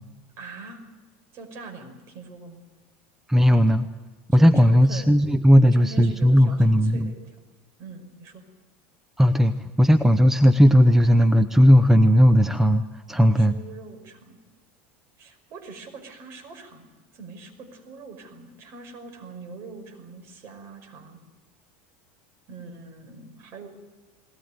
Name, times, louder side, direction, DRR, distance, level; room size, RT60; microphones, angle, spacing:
voice 1, 0.4-0.8 1.3-2.6 4.3-5.2 5.7-7.4 7.8-8.4 13.4-14.4 15.2-16.9 17.1-21.2 22.5-23.7, right 3 dB, 45° right, 6 dB, 5.5 m, -43 dB
voice 2, 3.3-3.9 4.3-7.1 9.2-13.5, equal, 5° right, 10 dB, 0.7 m, -17 dB
21.0 x 19.5 x 9.6 m, 1.3 s
supercardioid pair, 135°, 6 cm